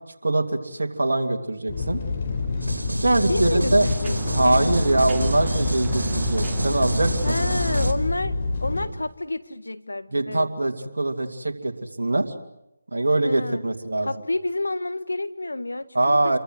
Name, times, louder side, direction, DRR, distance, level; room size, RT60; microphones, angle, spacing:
voice 1, 0.2-2.0 3.0-3.9 4.3-7.4 10.1-12.3 12.9-14.1 15.9-16.4, right 2 dB, 70° right, 3 dB, 2.7 m, -23 dB
sound 1, 1.7-8.9, left 3 dB, 45° left, 4.8 m, -27 dB
sound 2, 2.1-7.9, right 4 dB, 15° right, 1.7 m, -35 dB
sound 3, 2.6-7.9, right 1 dB, 85° right, 3.1 m, -29 dB
voice 2, 3.3-5.0 7.2-10.5 13.2-13.6 14.0-16.2, left 2 dB, 80° left, 13 dB, 1.6 m, -29 dB
29.0 x 23.5 x 8.0 m, 0.88 s
figure-of-eight pair, 155°, 0 cm